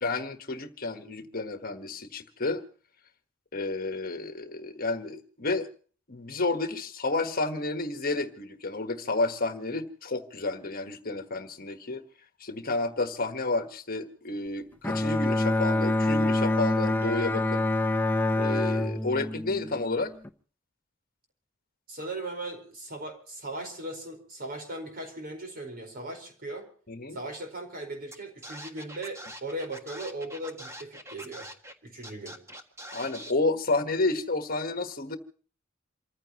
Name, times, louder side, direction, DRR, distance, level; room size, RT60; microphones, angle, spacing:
voice 1, 0.0-2.6 3.5-5.7 6.1-12.0 12.4-17.6 18.3-20.1 26.9-27.2 32.9-35.2, left 2 dB, 50° left, 1.4 m, -31 dB
Bowed string instrument, 14.8-20.3, left 2 dB, 10° left, 0.8 m, -26 dB
voice 2, 21.9-26.7 27.1-31.5 31.8-32.4, right 1 dB, 50° right, 4.7 m, -38 dB
Scratching (performance technique), 28.1-28.2 28.4-31.7 32.0-33.3, equal, 15° right, 1.6 m, -43 dB
28.0 x 15.0 x 3.0 m
head